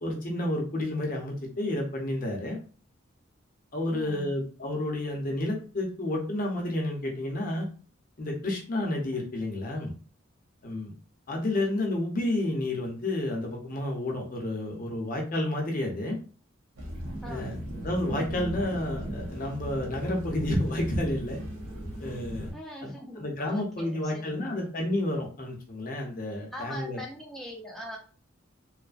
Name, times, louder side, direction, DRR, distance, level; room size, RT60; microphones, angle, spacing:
voice 1, 0.0-2.6 3.7-7.7 8.2-9.9 10.6-10.9 11.3-16.2 17.3-17.6 17.8-21.4 22.0-22.5 22.8-27.0, left 1 dB, 45° left, 0 dB, 0.7 m, -30 dB
voice 2, 3.9-4.3 17.2-17.6 22.5-24.7 26.5-28.0, equal, ahead, -2 dB, 0.5 m, -42 dB
sound 1, 16.8-22.5, equal, 85° right, 1.0 m, -37 dB
3.1 x 2.1 x 2.4 m, 0.39 s
head